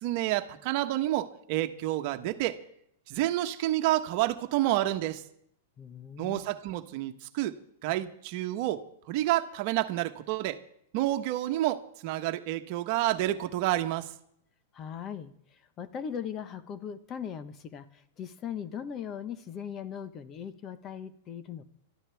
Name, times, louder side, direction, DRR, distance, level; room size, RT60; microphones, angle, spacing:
voice 1, 0.0-2.6 3.1-5.2 6.2-10.6 10.9-14.1, right 15 dB, 50° right, 8 dB, 1.2 m, -29 dB
voice 2, 5.8-6.4 14.7-21.6, left 8 dB, 30° left, 11 dB, 1.2 m, -39 dB
24.5 x 13.5 x 3.5 m, 0.70 s
hypercardioid pair, 125°, 0 cm